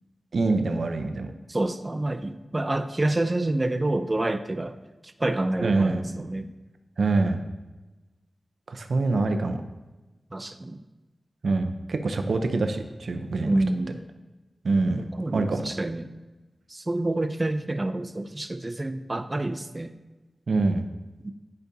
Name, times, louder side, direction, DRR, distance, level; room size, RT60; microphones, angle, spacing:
voice 1, 0.3-1.3 5.6-6.3 7.0-7.4 8.7-9.6 11.4-13.5 14.6-15.1 15.3-15.6 20.5-20.9, right 3 dB, 75° right, 7 dB, 0.6 m, -25 dB
voice 2, 1.5-4.8 5.0-6.5 10.3-10.8 13.4-14.1 15.0-16.1 16.7-19.9 21.2-21.3, right 2 dB, 25° right, 10 dB, 0.4 m, -28 dB
10.5 x 5.2 x 2.7 m, 1.1 s
wide cardioid pair, 75°, 0 cm